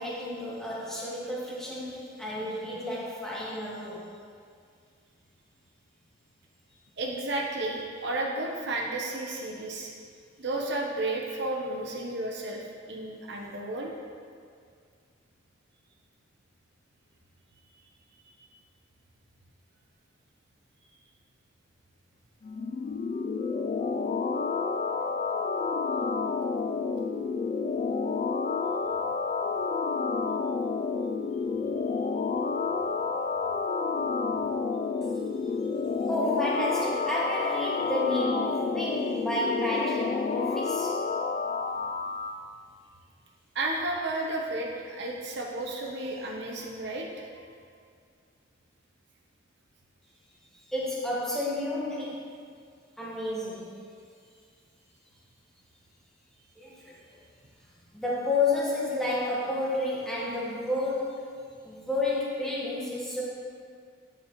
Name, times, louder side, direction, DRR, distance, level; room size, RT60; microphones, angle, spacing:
voice 1, 0.0-4.0 36.1-40.9 50.5-52.3 53.0-53.7 56.6-57.2 57.9-61.3 61.6-63.2, left 2 dB, 5° left, -7 dB, 1.4 m, -31 dB
voice 2, 7.0-9.9 10.4-13.9 43.5-47.5, right 2 dB, 55° right, -1 dB, 0.9 m, -32 dB
sound 1, 22.4-42.3, left 4 dB, 35° left, 0.3 m, -30 dB
9.3 x 7.3 x 3.1 m, 2.1 s
head